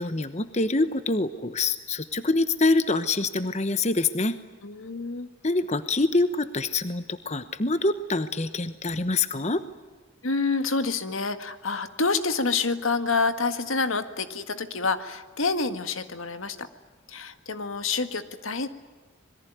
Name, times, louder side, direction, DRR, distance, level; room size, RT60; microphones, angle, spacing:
voice 1, 0.0-4.4 5.4-9.6, left 3 dB, 35° left, 11 dB, 1.0 m, -25 dB
voice 2, 4.6-5.3 10.2-16.7 17.1-18.7, left 4 dB, 80° left, 9 dB, 1.9 m, -27 dB
26.5 x 22.0 x 9.3 m, 1.3 s
head